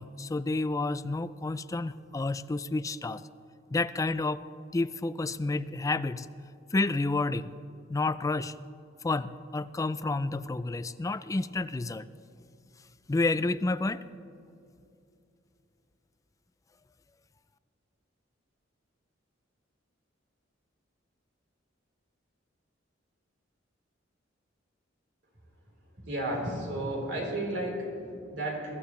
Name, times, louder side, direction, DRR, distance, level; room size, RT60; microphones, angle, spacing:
voice 1, 0.0-3.2 3.7-4.4 4.7-6.3 6.7-7.5 7.9-8.5 9.0-12.1 13.1-14.0, left 2 dB, 15° left, 14 dB, 0.3 m, -30 dB
voice 2, 26.0-28.7, right 1 dB, 70° right, -2 dB, 3.9 m, -33 dB
22.5 x 14.0 x 3.2 m, 2.6 s
head